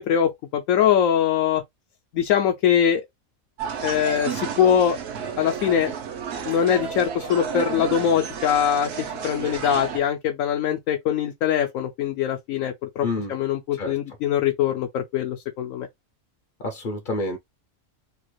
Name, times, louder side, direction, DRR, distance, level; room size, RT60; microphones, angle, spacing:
voice 1, 0.0-1.6 2.1-3.0 3.8-5.0 5.4-5.9 6.4-8.9 9.2-15.9, left 9 dB, 75° left, 0.9 m, -22 dB
sound 1, 3.6-10.0, right 7 dB, 60° right, 0.8 m, -32 dB
voice 2, 13.0-13.3 13.7-14.2 16.6-17.4, left 2 dB, 50° left, 0.7 m, -29 dB
3.1 x 2.4 x 3.0 m
omnidirectional pair, 1.4 m